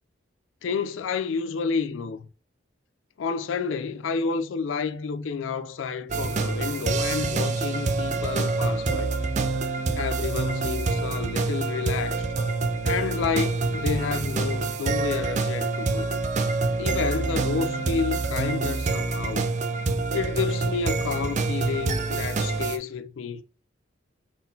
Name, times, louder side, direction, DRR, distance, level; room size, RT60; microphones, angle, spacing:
voice 1, 0.6-2.3 3.2-9.1 9.9-12.2 12.8-16.1 16.8-19.5 20.1-23.4, left 5 dB, 85° left, 0.4 m, -30 dB
sound 1, 6.1-22.8, right 3 dB, 40° right, 0.4 m, -26 dB
4.0 x 3.7 x 2.7 m
head